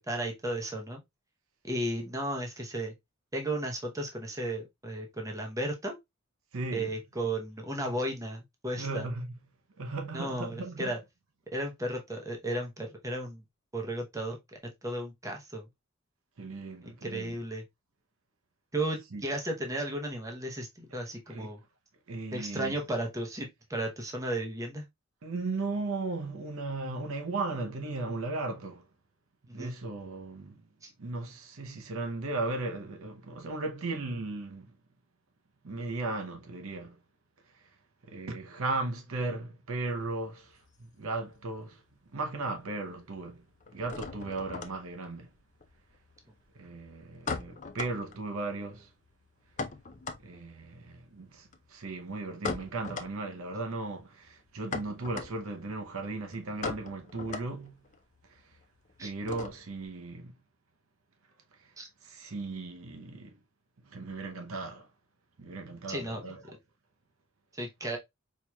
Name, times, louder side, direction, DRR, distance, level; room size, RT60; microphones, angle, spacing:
voice 1, 0.1-1.0 1.6-2.9 3.3-6.0 6.7-9.1 10.1-11.0 11.5-13.4 13.7-14.4 14.8-15.7 16.8-17.6 18.7-21.6 22.3-24.9 29.5-29.7 30.8-30.9 59.0-59.1 61.8-61.9 65.9-66.3 67.5-68.0, right 1 dB, 15° right, 0.7 m, -34 dB
voice 2, 6.5-6.9 8.8-9.3 9.8-10.9 16.4-17.3 19.1-19.2 21.3-21.5 22.1-22.7 25.2-28.9 29.5-30.6 31.0-34.7 35.6-37.0 38.0-41.8 42.1-43.5 43.7-45.3 46.5-48.9 50.2-57.8 58.3-58.4 59.0-60.4 61.6-61.7 62.0-63.4 63.8-64.9 65.4-66.4, right 3 dB, 70° right, 0.7 m, -36 dB
sound 1, 40.0-41.6 41.9-42.6 42.8-59.9, left 4 dB, 35° left, 0.4 m, -41 dB
4.4 x 2.9 x 2.2 m
head